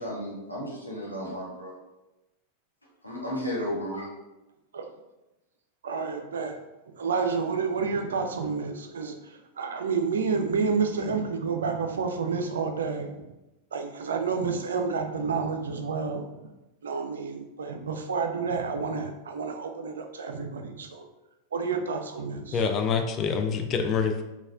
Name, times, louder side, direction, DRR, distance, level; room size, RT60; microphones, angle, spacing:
voice 1, 0.0-1.7 3.0-4.1, equal, 85° left, -5 dB, 0.8 m, -33 dB
voice 2, 5.8-6.6 7.0-13.3 13.7-16.2 16.8-21.1 21.5-22.6, right 5 dB, 65° right, 5 dB, 0.4 m, -29 dB
voice 3, 22.5-24.2, left 6 dB, 30° left, 5 dB, 0.3 m, -26 dB
4.0 x 2.3 x 2.4 m, 0.99 s
figure-of-eight pair, 90°, 0 cm